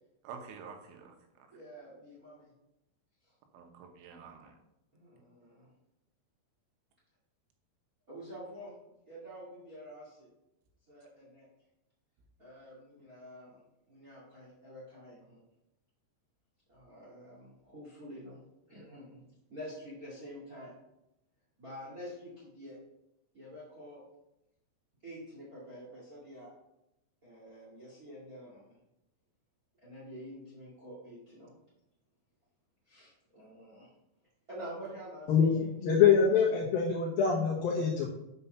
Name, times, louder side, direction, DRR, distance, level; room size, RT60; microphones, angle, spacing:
voice 1, 0.2-1.5 3.5-4.5, right 6 dB, 80° right, 4 dB, 3.4 m, -48 dB
voice 2, 1.5-2.5 4.9-5.7 8.1-8.7 9.1-10.3 10.9-11.5 12.4-13.6 13.9-15.4 16.7-18.4 18.7-19.2 19.5-20.7 21.6-22.8 23.3-24.0 25.0-26.5 27.2-28.7 29.8-31.5 32.9-33.9 34.5-36.6, equal, 60° right, -5 dB, 0.8 m, -48 dB
voice 3, 35.8-38.1, left 7 dB, 75° left, -3 dB, 2.2 m, -25 dB
6.9 x 5.6 x 5.5 m, 0.85 s
omnidirectional pair, 5.4 m